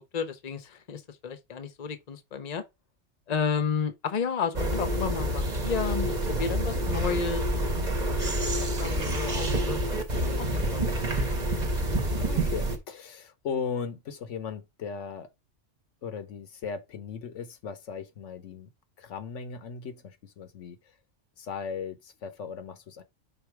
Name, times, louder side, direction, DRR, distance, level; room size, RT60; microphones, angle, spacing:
voice 1, 0.1-2.6 3.3-7.9 8.2-10.0 10.4-11.4, left 6 dB, 40° left, 0.9 m, -32 dB
sound 1, 4.5-12.8, right 1 dB, 40° right, 1.2 m, -28 dB
voice 2, 12.1-15.3 16.0-18.7 19.0-20.9 21.4-23.0, left 6 dB, 80° left, 1.2 m, -37 dB
5.4 x 4.1 x 4.5 m
omnidirectional pair, 1.2 m